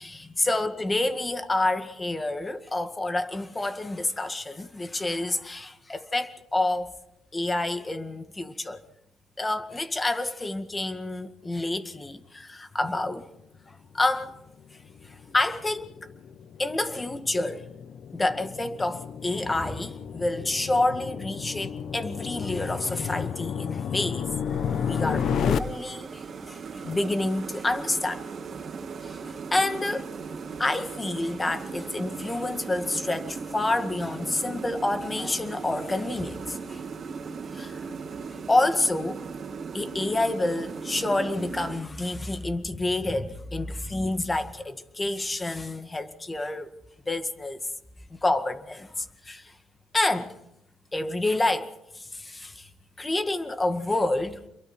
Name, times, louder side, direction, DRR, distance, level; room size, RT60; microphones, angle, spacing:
voice 1, 0.0-6.9 7.3-8.8 9.4-13.3 13.7-14.3 15.0-15.9 16.6-17.7 18.1-24.3 24.8-28.2 29.0-29.2 29.5-30.1 30.6-36.8 37.5-37.8 38.5-39.2 39.7-46.7 47.1-47.6 48.1-49.5 49.9-50.3 50.9-52.7 53.0-54.4, left 2 dB, 20° left, 1.9 m, -28 dB
sound 1, 14.5-25.6, left 7 dB, 65° left, 1.1 m, -32 dB
sound 2, 24.5-41.8, right 5 dB, 50° right, 2.6 m, -38 dB
28.0 x 23.0 x 4.5 m
cardioid pair, 90°, 0 cm